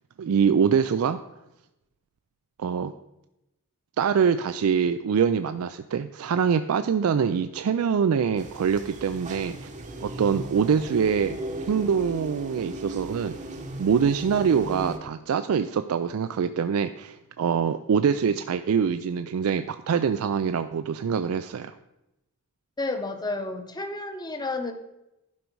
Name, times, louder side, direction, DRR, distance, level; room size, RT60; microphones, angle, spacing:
voice 1, 0.2-1.2 2.6-2.9 4.0-9.7 10.0-11.3 11.7-13.3 13.8-21.7, right 6 dB, 70° right, 10 dB, 0.4 m, -24 dB
sound 1, 8.4-15.0, right 1 dB, 35° right, 0.9 m, -37 dB
voice 2, 22.8-24.7, left 2 dB, 20° left, 7 dB, 0.8 m, -31 dB
11.5 x 5.3 x 4.5 m, 0.90 s
head